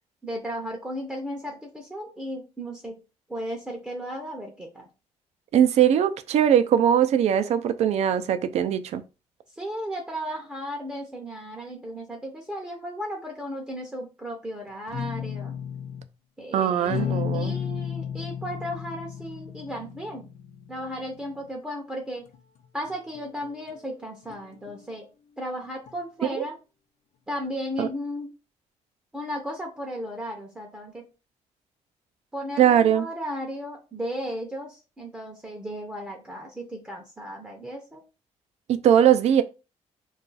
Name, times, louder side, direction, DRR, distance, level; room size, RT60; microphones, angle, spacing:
voice 1, 0.2-3.0 3.3-4.8 9.6-15.5 16.4-20.3 20.7-22.3 22.7-25.1 25.4-26.6 27.3-28.3 29.1-31.0 32.3-38.0, equal, 10° right, 0.6 m, -35 dB
voice 2, 5.5-9.0 16.5-17.5 26.2-26.4 27.8-27.9 32.6-33.1 38.7-39.4, right 9 dB, 65° right, 0.4 m, -20 dB
sound 1, 14.9-16.1 16.9-21.5 22.3-22.4 22.6-23.7 24.3-24.9 25.9-26.0, left 8 dB, 75° left, 0.5 m, -34 dB
2.3 x 2.3 x 3.9 m
cardioid pair, 150°, 12 cm